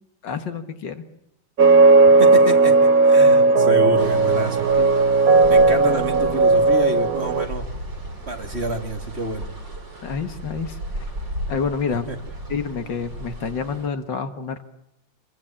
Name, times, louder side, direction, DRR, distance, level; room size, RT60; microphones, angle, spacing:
voice 1, 0.2-1.0 4.8-4.9 10.0-11.0 11.5-12.1 12.5-14.6, left 5 dB, 70° left, 9 dB, 2.2 m, -28 dB
sound 1, 1.6-7.4, right 3 dB, 50° right, 1.6 m, -15 dB
voice 2, 2.2-2.8 3.0-4.7 5.5-7.7 8.3-9.5 11.9-12.2, right 2 dB, 35° right, 5 dB, 2.4 m, -28 dB
sound 2, 4.0-13.9, right 1 dB, 75° right, 5.8 m, -35 dB
27.0 x 22.5 x 8.8 m, 0.80 s
omnidirectional pair, 2.0 m